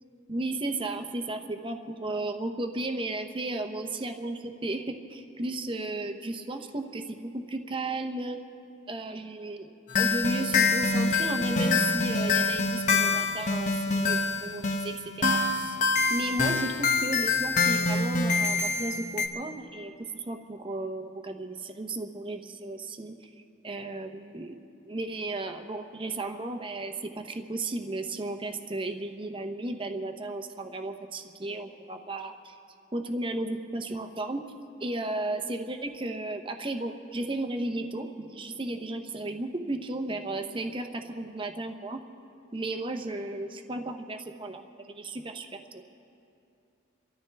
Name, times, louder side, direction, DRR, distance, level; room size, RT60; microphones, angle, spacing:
voice 1, 0.3-8.4 8.9-9.7 10.0-15.8 16.1-23.3 23.6-32.6 32.9-34.4 34.8-42.0 42.5-45.8, right 2 dB, 25° right, 6 dB, 0.8 m, -34 dB
sound 1, 9.9-19.3, left 3 dB, 40° left, 1.0 m, -26 dB
29.5 x 13.0 x 3.4 m, 2.7 s
head